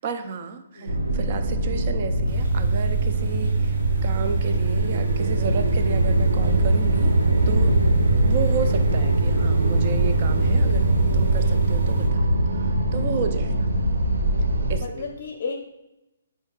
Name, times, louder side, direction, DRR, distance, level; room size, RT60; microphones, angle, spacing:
voice 1, 0.0-7.2 7.5-7.8 8.2-10.9 11.1-13.7 14.7-15.1, right 5 dB, 40° right, 8 dB, 0.4 m, -32 dB
sound 1, 0.9-14.8, right 1 dB, 85° right, 0.7 m, -22 dB
sound 2, 2.3-12.1, right 6 dB, 55° right, 0.9 m, -26 dB
voice 2, 14.8-15.6, left 4 dB, 50° left, 3 dB, 0.6 m, -33 dB
4.4 x 2.6 x 3.7 m, 0.96 s
hypercardioid pair, 155°, 0 cm